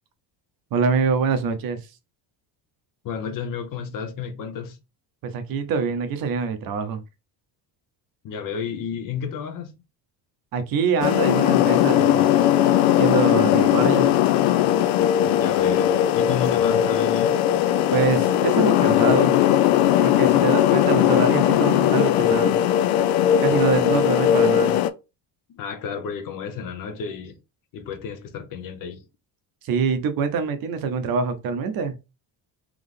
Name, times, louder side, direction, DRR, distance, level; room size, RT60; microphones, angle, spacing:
voice 1, 0.7-1.9 5.2-7.0 10.5-12.3 13.0-14.2 17.9-19.4 20.0-22.6 23.4-24.7 29.6-32.0, right 5 dB, 50° right, 0.7 m, -24 dB
voice 2, 3.0-4.8 8.2-9.7 15.2-17.4 23.9-24.0 25.5-27.4 27.7-29.0, left 6 dB, 45° left, 0.7 m, -32 dB
sound 1, 11.0-24.9, left 11 dB, 80° left, 0.6 m, -19 dB
3.6 x 3.0 x 3.6 m
cardioid pair, 170°, 46 cm